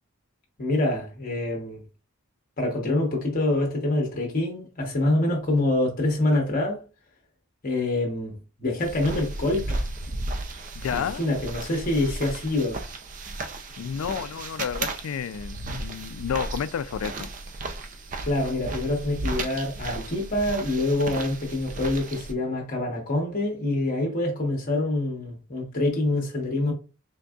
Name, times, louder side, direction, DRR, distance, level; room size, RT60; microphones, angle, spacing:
voice 1, 0.6-1.8 2.6-6.8 7.6-8.3 8.6-9.8 10.9-12.8 18.2-26.7, left 2 dB, 40° left, 0.9 m, -26 dB
sound 1, 8.8-22.3, right 2 dB, 40° right, 0.4 m, -34 dB
voice 2, 10.8-11.3 13.8-17.3, left 8 dB, 75° left, 0.3 m, -31 dB
3.9 x 3.5 x 2.3 m
head